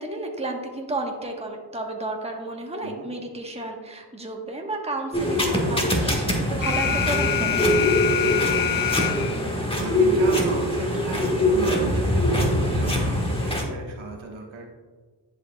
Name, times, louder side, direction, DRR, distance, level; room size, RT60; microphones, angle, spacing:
voice 1, 0.0-7.6, right 2 dB, 15° right, 2 dB, 1.0 m, -32 dB
sound 1, 5.1-13.6, left 1 dB, 10° left, 1.3 m, -23 dB
Alarm, 6.6-9.6, left 10 dB, 45° left, 0.5 m, -25 dB
voice 2, 8.7-14.7, right 3 dB, 70° right, 0 dB, 1.3 m, -35 dB
10.5 x 4.8 x 2.2 m, 1.4 s
cardioid pair, 50°, 48 cm